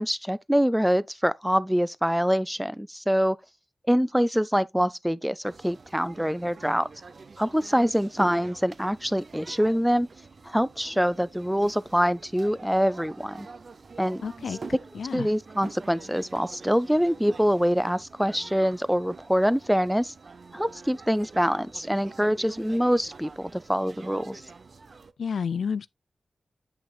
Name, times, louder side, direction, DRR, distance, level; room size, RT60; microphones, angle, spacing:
voice 1, 0.0-3.4 3.9-6.9 7.4-10.1 10.4-13.5 14.0-14.2 14.5-14.6 15.1-20.1 20.5-24.4, equal, 5° right, 0.5 m, -25 dB
sound 1, 5.4-25.1, right 4 dB, 55° right, 0.6 m, -46 dB
voice 2, 14.2-14.6 14.9-15.3 25.2-25.9, left 6 dB, 85° left, 0.4 m, -30 dB
9.1 x 5.8 x 2.3 m
wide cardioid pair, 85°, 0 cm